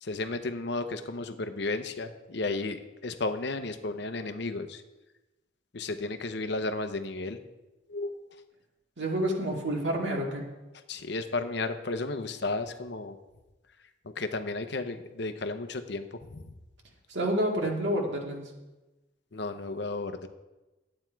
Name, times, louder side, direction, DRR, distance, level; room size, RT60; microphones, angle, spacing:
voice 1, 0.0-4.8 5.7-7.4 7.9-8.2 10.9-13.2 14.0-16.5 19.3-20.3, left 3 dB, 60° left, 9 dB, 0.7 m, -33 dB
voice 2, 9.0-10.4 17.1-18.5, right 1 dB, 60° right, 0 dB, 2.1 m, -29 dB
12.0 x 8.8 x 4.6 m, 1.1 s
head